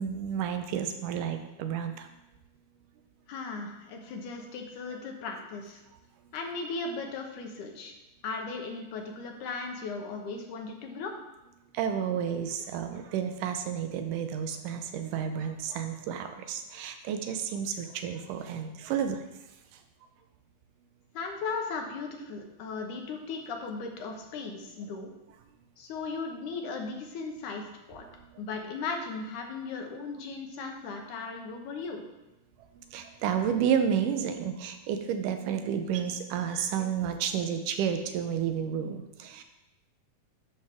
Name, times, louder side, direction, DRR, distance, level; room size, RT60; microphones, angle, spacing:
voice 1, 0.0-2.1 11.7-19.2 32.9-39.4, right 8 dB, 90° right, 7 dB, 2.3 m, -31 dB
voice 2, 3.3-5.8 6.3-7.9 8.2-11.1 21.1-25.1 25.8-28.1 28.4-32.0, left 4 dB, 75° left, 3 dB, 2.4 m, -37 dB
11.5 x 5.6 x 3.5 m, 0.97 s
omnidirectional pair, 3.6 m